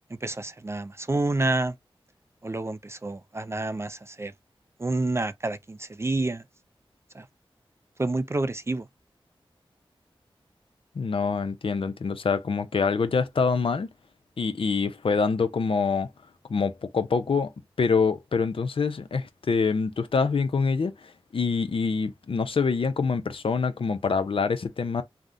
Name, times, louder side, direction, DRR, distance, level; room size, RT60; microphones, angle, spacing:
voice 1, 0.2-1.8 2.4-4.3 4.8-6.4 7.1-7.3 8.0-8.8, right 2 dB, 25° right, 0.3 m, -28 dB
voice 2, 11.0-13.9 14.4-16.1 16.5-17.5 17.8-25.0, left 5 dB, 65° left, 0.5 m, -25 dB
3.5 x 2.1 x 2.5 m
cardioid pair, 55°, 10 cm